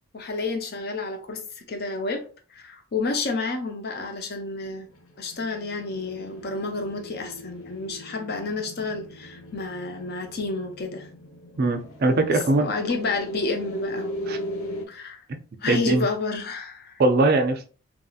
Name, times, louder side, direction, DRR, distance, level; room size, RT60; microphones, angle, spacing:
voice 1, 0.1-1.4 1.7-4.9 5.2-11.1 12.3-14.2 14.9-15.2 15.6-17.0, left 3 dB, 45° left, 0.5 m, -30 dB
sound 1, 4.6-14.8, equal, 85° left, 0.7 m, -38 dB
voice 2, 11.6-12.7 14.3-14.4 15.7-16.1 17.0-17.7, right 2 dB, 45° right, 0.4 m, -21 dB
2.9 x 2.7 x 2.4 m
head